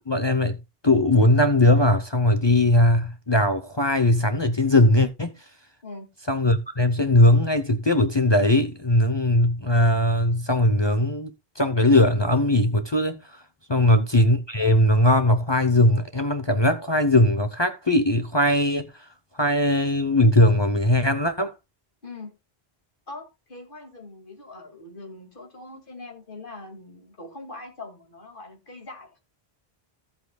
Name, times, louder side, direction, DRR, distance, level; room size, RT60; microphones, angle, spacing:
voice 1, 0.1-0.6 0.8-5.3 6.3-13.2 13.7-18.9 19.4-21.5, left 1 dB, 30° left, 0.8 m, -20 dB
voice 2, 13.8-14.1 22.0-22.3 23.1-29.1, left 3 dB, 55° left, 2.5 m, -42 dB
14.5 x 8.2 x 2.3 m
omnidirectional pair, 1.0 m